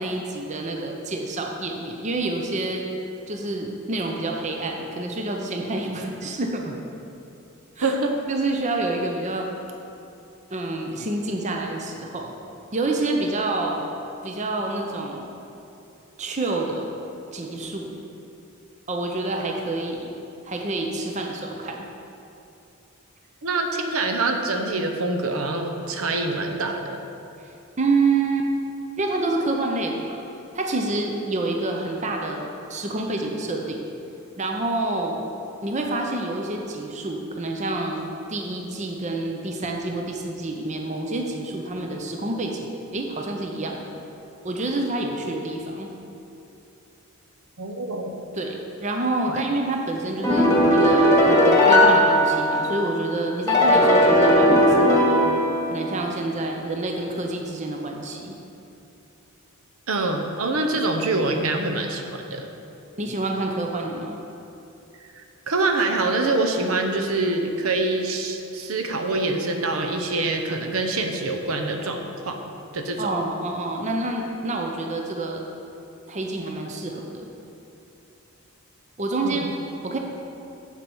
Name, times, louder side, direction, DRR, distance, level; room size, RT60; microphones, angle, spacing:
voice 1, 0.0-2.8 3.3-6.8 7.8-7.9 8.3-9.5 10.5-12.3 12.7-13.8 14.2-15.3 16.2-16.9 17.3-17.9 18.9-20.1 20.4-21.9 27.4-28.5 29.0-30.2 30.5-33.9 34.4-35.2 35.6-43.9 44.4-45.9 48.3-55.3 55.7-58.4 63.0-64.2 73.0-75.4 76.1-77.3 79.0-80.0, right 2 dB, 35° right, 2 dB, 0.6 m, -28 dB
voice 2, 7.8-8.2 23.4-27.0 47.6-48.1 49.3-49.4 59.9-62.5 65.5-72.4 72.7-73.1 79.1-79.5, right 2 dB, 75° right, 4 dB, 0.8 m, -25 dB
sound 1, 50.2-52.9 53.5-56.0, left 1 dB, 15° left, 1.4 m, -17 dB
7.5 x 7.4 x 5.4 m, 2.8 s
head